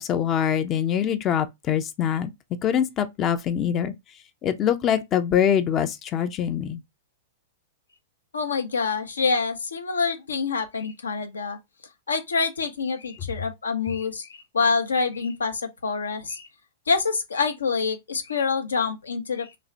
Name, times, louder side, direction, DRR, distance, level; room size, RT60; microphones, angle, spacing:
voice 1, 0.0-2.3 2.6-3.9 4.4-6.8, left 9 dB, 30° left, 0.4 m, -24 dB
voice 2, 8.3-11.6 12.1-16.5 16.9-19.6, left 4 dB, 85° left, 0.6 m, -26 dB
3.0 x 2.1 x 2.6 m
hypercardioid pair, 110°, 0 cm